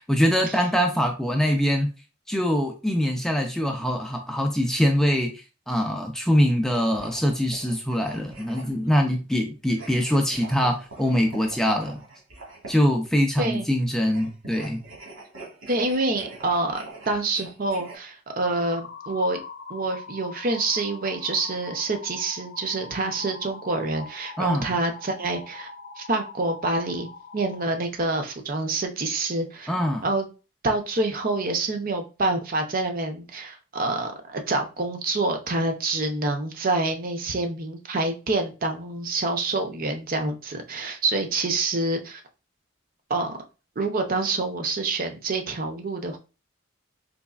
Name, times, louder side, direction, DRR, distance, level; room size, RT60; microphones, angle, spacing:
voice 1, 0.0-1.9 2.3-12.0 12.7-14.8 24.4-24.7 29.7-30.0, equal, ahead, 2 dB, 0.4 m, -23 dB
sound 1, 6.6-8.9 9.7-13.0 14.0-18.0, right 2 dB, 80° right, 1.7 m, -44 dB
voice 2, 15.7-19.4 19.7-25.7 26.0-27.1 27.3-29.7 30.0-30.3 30.6-42.2 43.1-43.4 43.8-46.2, right 2 dB, 45° right, 5 dB, 0.6 m, -27 dB
sound 2, 18.4-27.7, left 4 dB, 45° left, 0.7 m, -42 dB
4.0 x 3.1 x 2.4 m, 0.31 s
head